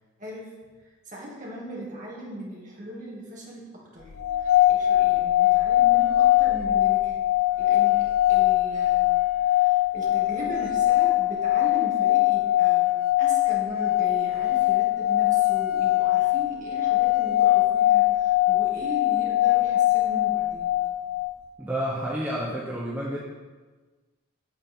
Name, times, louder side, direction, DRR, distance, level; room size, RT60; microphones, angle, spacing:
voice 1, 0.2-0.5 0.8-4.1 4.4-7.2 7.6-12.9 13.2-20.7, equal, 35° right, -4 dB, 2.2 m, -38 dB
sound 1, 4.2-21.4, left 15 dB, 75° left, 0.6 m, -22 dB
voice 2, 21.6-23.2, right 1 dB, 10° right, -6 dB, 1.1 m, -30 dB
8.9 x 7.7 x 4.5 m, 1.3 s
head